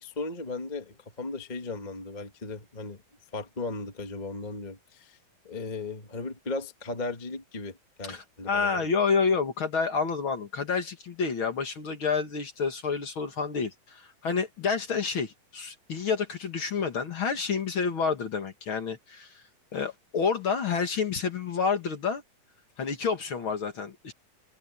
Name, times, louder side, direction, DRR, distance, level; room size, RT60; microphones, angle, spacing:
voice 1, 0.0-3.0 3.3-5.2 5.4-8.9, left 3 dB, 25° left, 0.8 m, -36 dB
voice 2, 8.0-19.4 19.7-22.2 22.8-24.1, left 5 dB, 45° left, 2.0 m, -29 dB
omnidirectional pair, 4.0 m